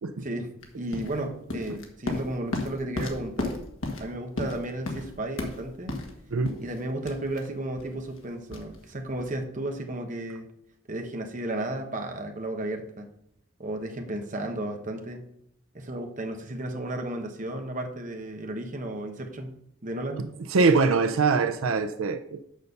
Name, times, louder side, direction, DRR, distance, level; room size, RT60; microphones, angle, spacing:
voice 1, 0.2-3.6 4.0-6.0 6.6-10.5 10.9-13.1 13.6-15.3 15.7-20.3, right 1 dB, 40° right, 4 dB, 1.0 m, -34 dB
sound 1, 0.6-9.4, left 2 dB, 75° left, 1.5 m, -35 dB
voice 2, 20.5-22.4, right 4 dB, 80° right, 9 dB, 0.5 m, -23 dB
6.5 x 5.4 x 6.6 m, 0.75 s
head